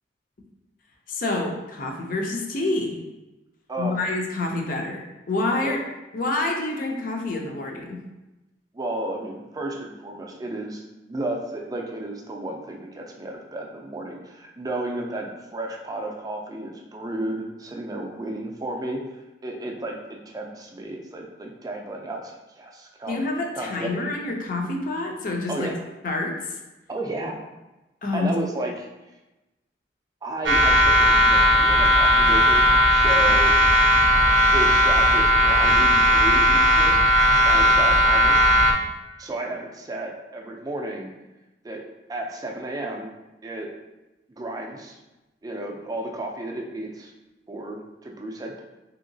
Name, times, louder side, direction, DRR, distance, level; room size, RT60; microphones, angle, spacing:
voice 1, 1.1-2.9 3.8-5.8 6.1-8.0 23.1-25.7 26.0-26.6 28.0-28.3, left 2 dB, 50° left, 2 dB, 0.5 m, -27 dB
voice 2, 3.7-4.0 5.6-5.7 8.7-19.0 19.4-23.2 23.6-24.1 25.5-25.7 26.9-27.4 28.1-28.9 30.2-32.6 32.9-33.5 34.5-37.0 37.4-38.4 39.2-41.1 41.6-41.8 42.1-43.1 43.4-43.7 44.3-45.0 45.4-47.1 47.5-48.6, right 1 dB, 20° right, 1 dB, 0.4 m, -32 dB
sound 1, 30.5-38.7, equal, 90° right, 0.5 m, -17 dB
2.9 x 2.8 x 2.6 m, 1.0 s
head